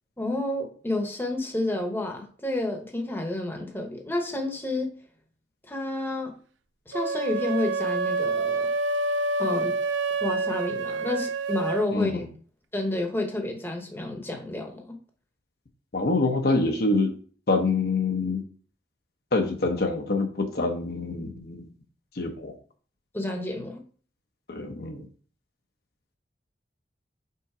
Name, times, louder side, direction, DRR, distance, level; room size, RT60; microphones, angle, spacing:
voice 1, 0.2-4.9 5.7-6.3 6.9-8.7 9.4-9.8 10.2-12.3 12.7-15.0 23.1-23.8, left 1 dB, 10° left, 0.9 m, -30 dB
sound 1, 6.9-11.9, right 3 dB, 80° right, 0.5 m, -27 dB
voice 2, 11.9-12.3 15.9-17.1 17.5-18.4 19.3-21.7 22.1-22.5 24.5-25.1, left 3 dB, 55° left, 0.8 m, -26 dB
5.6 x 3.9 x 4.8 m
head